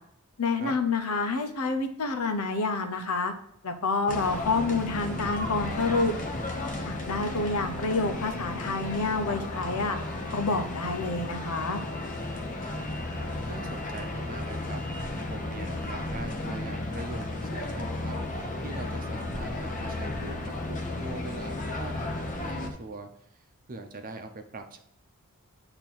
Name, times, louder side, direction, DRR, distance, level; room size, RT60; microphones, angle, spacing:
voice 1, 0.4-3.3 3.6-6.1 6.8-10.0 10.3-11.8, left 3 dB, 85° left, 6 dB, 0.9 m, -28 dB
sound 1, 4.1-22.7, left 2 dB, 35° left, 1.0 m, -34 dB
voice 2, 7.3-7.7 12.6-13.0 13.5-14.8 15.3-18.1 18.6-24.8, right 2 dB, 40° right, 5 dB, 0.8 m, -42 dB
8.8 x 3.0 x 6.0 m, 0.75 s
head